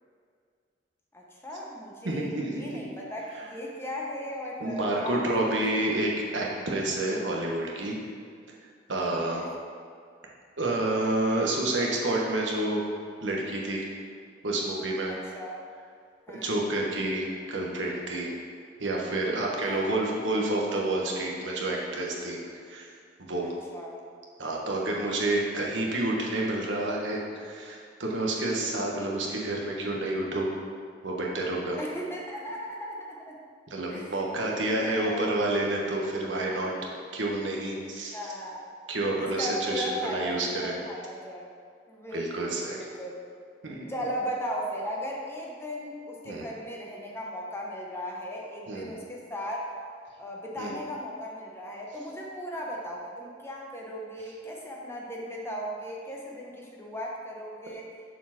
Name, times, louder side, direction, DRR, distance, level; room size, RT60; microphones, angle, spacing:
voice 1, 1.1-5.2 5.7-5.9 9.3-9.5 15.1-15.5 16.3-16.5 19.6-19.9 23.4-24.0 31.8-33.4 33.9-35.2 38.1-38.7 39.1-41.5 41.9-43.2 43.9-49.7 50.2-57.9, equal, 15° left, -2 dB, 1.0 m, -37 dB
voice 2, 2.0-2.7 4.6-8.0 8.9-9.4 10.6-12.8 13.2-13.8 14.4-15.1 16.3-18.3 18.8-22.4 22.7-22.9 23.2-23.5 24.4-30.5 31.0-31.8 33.7-36.7 37.1-38.2 38.9-40.7 42.1-42.8 43.6-43.9 46.3-46.4 48.7-48.9 50.6-50.7, right 2 dB, 85° right, -2 dB, 1.3 m, -29 dB
6.9 x 4.6 x 5.9 m, 2.1 s
head